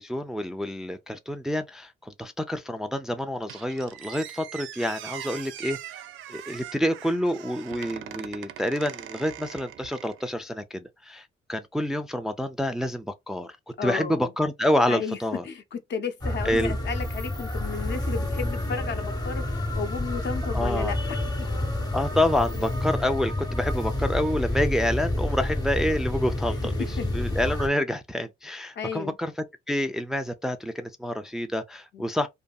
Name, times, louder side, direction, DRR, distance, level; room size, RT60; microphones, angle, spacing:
voice 1, 0.0-5.8 6.3-13.5 13.8-15.4 16.4-16.7 20.5-20.9 21.9-26.9 27.1-29.3 29.7-32.3, left 1 dB, 5° right, 0.3 m, -28 dB
Squeak, 3.5-10.4, right 11 dB, 80° right, 0.4 m, -41 dB
voice 2, 13.8-14.3 14.9-15.2 15.4-21.2 27.0-27.1 28.8-29.2 31.9-32.1, left 5 dB, 60° left, 0.7 m, -33 dB
sound 1, 16.2-27.7, left 1 dB, 20° left, 0.8 m, -29 dB
2.6 x 2.6 x 2.3 m
cardioid pair, 90°, 20 cm